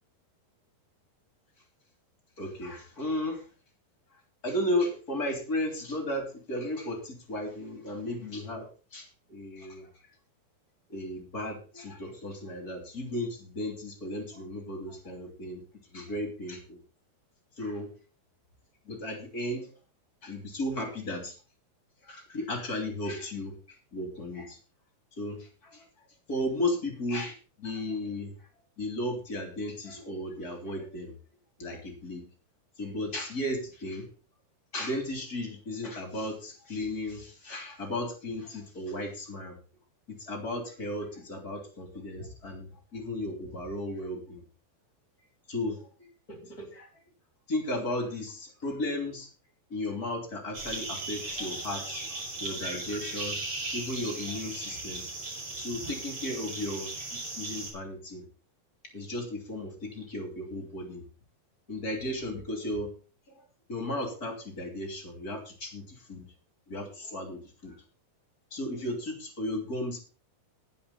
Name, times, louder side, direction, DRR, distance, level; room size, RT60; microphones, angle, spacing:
voice 1, 2.4-3.5 4.1-8.7 8.9-9.9 10.9-15.6 15.9-16.8 17.6-17.9 18.8-19.7 20.2-21.4 22.0-24.6 25.1-25.9 26.3-28.5 28.8-31.1 31.6-32.2 32.8-34.1 34.7-39.6 40.1-44.4 45.5-47.0 47.5-49.3 49.7-53.4 53.7-55.0 55.6-58.2 58.9-61.0 61.7-62.9 63.3-66.2 66.7-67.8 68.5-70.0, left 1 dB, 25° left, 4 dB, 2.9 m, -35 dB
sound 1, 50.5-57.7, right 2 dB, 35° right, 5.2 m, -37 dB
20.0 x 7.0 x 4.2 m, 0.35 s
omnidirectional pair, 4.7 m